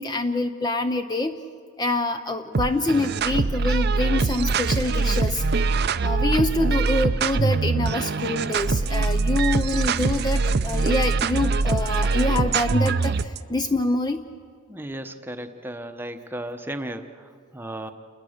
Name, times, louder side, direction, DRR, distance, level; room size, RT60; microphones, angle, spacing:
voice 1, 0.0-1.4 1.8-5.4 6.0-14.3, left 2 dB, 20° left, 8 dB, 0.5 m, -26 dB
sound 1, 2.5-13.4, right 4 dB, 50° right, 0.5 m, -23 dB
voice 2, 14.7-17.9, right 1 dB, 10° right, 7 dB, 0.8 m, -35 dB
29.0 x 21.0 x 6.5 m, 2.2 s
head